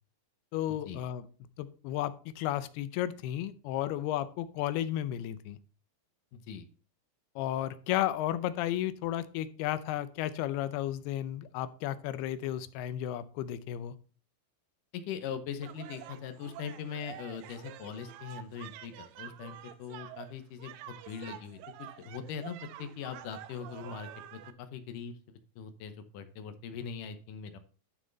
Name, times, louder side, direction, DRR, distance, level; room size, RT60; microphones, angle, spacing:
voice 1, 0.5-1.3 1.6-5.6 7.4-14.0, left 12 dB, 85° left, 13 dB, 2.7 m, -33 dB
voice 2, 6.3-6.6 14.9-27.6, left 7 dB, 70° left, 9 dB, 2.2 m, -41 dB
sound 1, 15.6-24.5, right 12 dB, 80° right, 2.2 m, -48 dB
11.5 x 6.3 x 4.0 m, 0.39 s
omnidirectional pair, 4.5 m